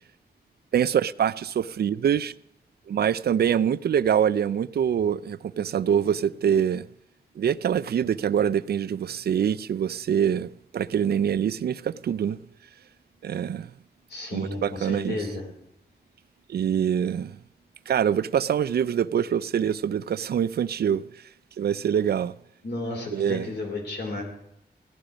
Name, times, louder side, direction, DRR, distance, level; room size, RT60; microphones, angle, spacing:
voice 1, 0.7-2.3 2.9-6.9 7.4-12.4 13.2-13.7 14.3-15.2 16.5-17.4 17.9-21.1 21.6-22.3 23.1-23.5, right 8 dB, 65° right, 0.4 m, -24 dB
voice 2, 14.1-15.5 22.6-24.2, left 2 dB, 90° left, 3.8 m, -33 dB
16.0 x 11.5 x 5.1 m
wide cardioid pair, 145°, 17 cm